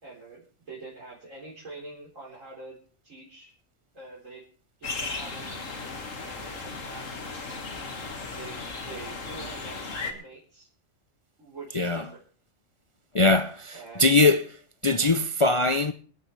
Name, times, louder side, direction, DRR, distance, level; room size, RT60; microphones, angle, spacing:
voice 1, 0.0-2.8 3.0-3.5 3.9-4.4 4.8-5.5 6.2-7.6 8.3-10.7 11.4-12.2 13.7-14.1 14.9-15.1, right 3 dB, 80° right, 4.6 m, -45 dB
sound 1, 4.8-10.1, left 3 dB, 80° left, 2.3 m, -36 dB
voice 2, 11.7-12.1 13.1-15.9, left 3 dB, 35° left, 0.6 m, -22 dB
26.5 x 10.0 x 3.3 m
omnidirectional pair, 1.3 m